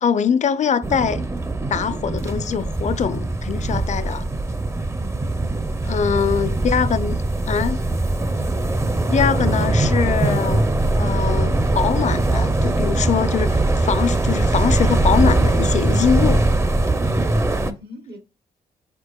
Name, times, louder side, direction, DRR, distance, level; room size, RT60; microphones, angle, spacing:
voice 1, 0.0-1.2 1.7-4.2 5.8-7.2 7.5-7.8 9.1-10.7 11.0-16.4, left 7 dB, 45° left, 0.4 m, -22 dB
sound 1, 0.8-17.7, right 2 dB, 15° right, 0.5 m, -21 dB
voice 2, 5.0-5.4 6.1-6.6 17.5-18.2, left 1 dB, 70° right, 0.9 m, -40 dB
4.5 x 4.2 x 2.3 m
supercardioid pair, 50°, 18 cm